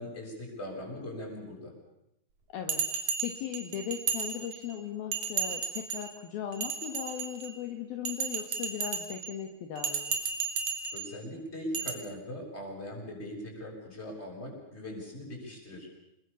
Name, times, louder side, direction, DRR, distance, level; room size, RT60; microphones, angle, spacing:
voice 1, 0.0-1.7 10.9-15.9, left 1 dB, 15° left, 0 dB, 7.5 m, -40 dB
voice 2, 2.5-10.2, left 9 dB, 65° left, 4 dB, 3.3 m, -38 dB
Bell, 2.7-4.7 5.1-6.1 6.5-7.6 8.1-9.3 9.8-11.1 11.7-11.9, right 6 dB, 45° right, 3.9 m, -33 dB
28.5 x 22.5 x 7.1 m, 0.84 s
omnidirectional pair, 4.9 m